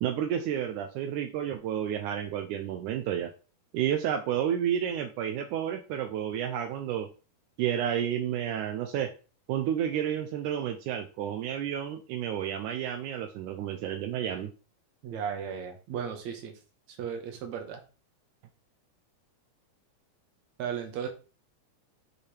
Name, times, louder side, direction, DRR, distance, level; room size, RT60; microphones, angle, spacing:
voice 1, 0.0-3.3 3.7-7.1 7.6-9.1 9.5-14.5, right 9 dB, 85° right, 5 dB, 2.1 m, -31 dB
voice 2, 15.0-16.5 16.9-17.8 20.6-21.1, right 7 dB, 70° right, 3 dB, 2.4 m, -35 dB
6.7 x 3.4 x 4.3 m, 0.34 s
omnidirectional pair, 3.5 m